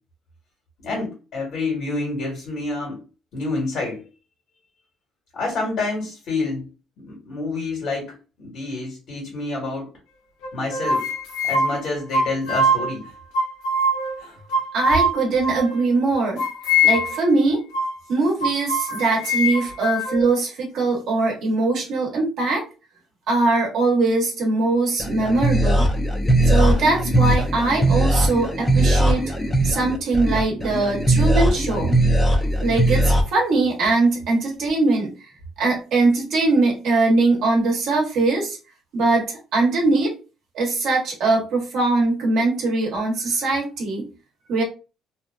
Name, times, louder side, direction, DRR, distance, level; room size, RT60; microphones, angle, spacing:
voice 1, 0.8-3.0 3.3-4.0 5.3-6.7 7.0-10.0 10.5-11.0 11.4-13.1, left 3 dB, 60° left, 1.5 m, -28 dB
sound 1, 10.4-12.9 13.3-14.2 14.5-15.9 16.4-17.3 17.7-18.0 18.4-20.3, left 1 dB, 85° left, 0.6 m, -22 dB
voice 2, 14.7-16.4 16.8-17.6 18.1-22.6 23.3-25.9 26.4-29.3 29.6-32.0 32.6-35.3 35.6-38.6 38.9-40.1 40.5-44.1 44.5-44.6, right 3 dB, 70° right, 0.8 m, -21 dB
sound 2, 25.0-33.2, right 1 dB, 15° left, 0.5 m, -19 dB
2.8 x 2.2 x 2.3 m
cardioid pair, 130°, 0 cm